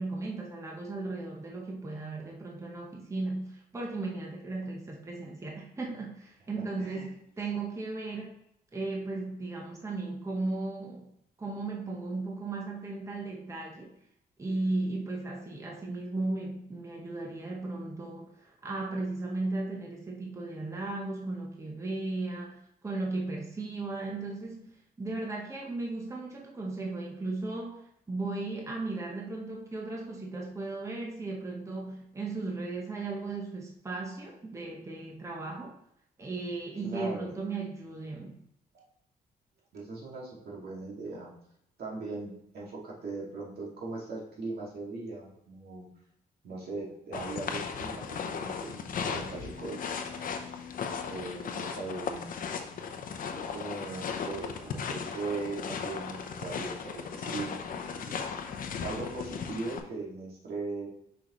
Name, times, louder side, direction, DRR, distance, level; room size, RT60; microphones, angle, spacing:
voice 1, 0.0-8.3 8.7-11.1 11.4-13.9 14.4-22.6 22.8-24.7 25.0-27.8 28.1-35.7 36.2-38.4, right 2 dB, 20° right, -1 dB, 0.8 m, -36 dB
voice 2, 36.8-37.4 38.7-38.8 39.7-41.3 41.8-45.9 46.4-49.8 50.1-50.3 51.1-52.3 53.3-58.3 58.8-60.9, right 3 dB, 75° right, -3 dB, 2.2 m, -39 dB
sound 1, 47.1-59.8, left 6 dB, 60° left, 0.7 m, -36 dB
6.2 x 5.1 x 3.0 m, 0.75 s
cardioid pair, 135°, 16 cm